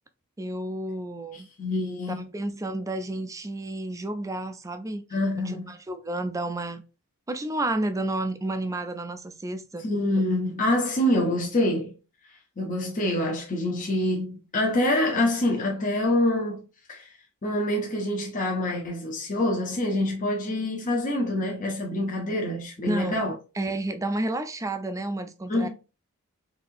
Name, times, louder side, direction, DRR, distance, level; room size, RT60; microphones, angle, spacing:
voice 1, 0.4-1.5 2.1-5.0 5.4-6.8 7.3-9.9 22.8-23.2 23.5-25.7, right 2 dB, 15° right, 0.3 m, -31 dB
voice 2, 1.3-2.3 5.1-5.7 9.8-12.0 12.6-16.6 16.9-17.1 17.4-23.3 25.5-25.7, left 1 dB, 35° left, 0.6 m, -26 dB
4.1 x 2.7 x 2.5 m
head